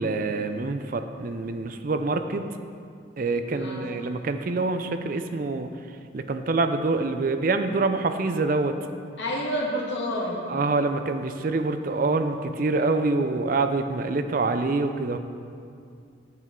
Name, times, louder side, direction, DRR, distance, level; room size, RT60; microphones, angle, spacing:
voice 1, 0.0-2.5 3.2-5.7 6.1-8.8 10.5-15.2, right 3 dB, 45° right, 8 dB, 0.4 m, -26 dB
voice 2, 3.5-3.9 9.2-10.4, equal, 70° left, -3 dB, 1.6 m, -29 dB
9.1 x 7.8 x 3.7 m, 2.3 s
head